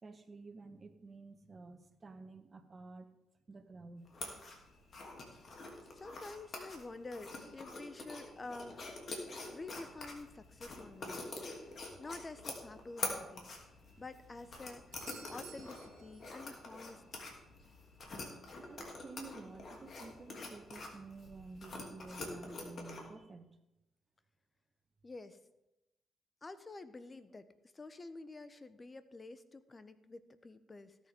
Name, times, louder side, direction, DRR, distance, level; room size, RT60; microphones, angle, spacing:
voice 1, 0.0-3.1 3.5-4.1 18.6-23.5, right 3 dB, 40° right, 8 dB, 1.4 m, -51 dB
sound 1, 4.1-23.1, left 3 dB, 50° left, 2.9 m, -46 dB
voice 2, 5.8-8.8 9.5-11.3 12.0-13.5 14.0-15.0 15.3-17.0 25.0-25.4 26.4-27.5 27.7-31.1, left 3 dB, 30° left, 12 dB, 0.9 m, -49 dB
Doorbell, 14.9-16.8 20.8-20.9, right 10 dB, 80° right, 0.9 m, -56 dB
18.0 x 8.1 x 3.8 m, 0.94 s
hypercardioid pair, 45°, 0 cm